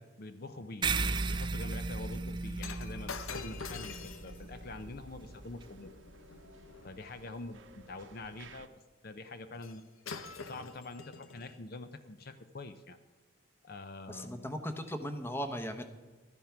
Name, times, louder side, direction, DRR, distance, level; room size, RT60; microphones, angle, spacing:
voice 1, 0.2-5.9 6.8-8.7 9.0-9.8 10.4-13.0 13.6-14.5, left 2 dB, 45° left, 10 dB, 0.6 m, -45 dB
sound 1, 0.8-5.7, right 4 dB, 20° right, 0.4 m, -36 dB
Shatter, 2.6-7.0 9.6-9.8 10.1-11.6 12.3-12.4, left 5 dB, 80° left, 0.9 m, -46 dB
sound 2, 3.3-8.7, right 3 dB, 65° right, 0.8 m, -57 dB
voice 2, 14.1-15.8, equal, 10° left, 8 dB, 0.9 m, -37 dB
12.5 x 11.0 x 5.8 m, 1.3 s
head